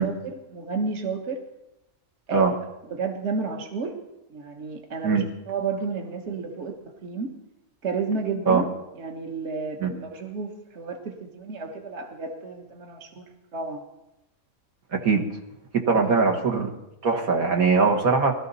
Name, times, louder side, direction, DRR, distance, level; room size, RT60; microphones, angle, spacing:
voice 1, 0.0-1.4 2.3-2.5 2.9-3.9 4.3-7.3 7.8-8.7 9.0-13.2 13.5-13.8 16.0-16.1, right 4 dB, 55° right, 3 dB, 1.6 m, -31 dB
voice 2, 14.9-15.2 15.9-16.7 17.0-18.4, right 4 dB, 75° right, 2 dB, 2.0 m, -21 dB
21.0 x 13.5 x 4.1 m, 0.90 s
omnidirectional pair, 1.5 m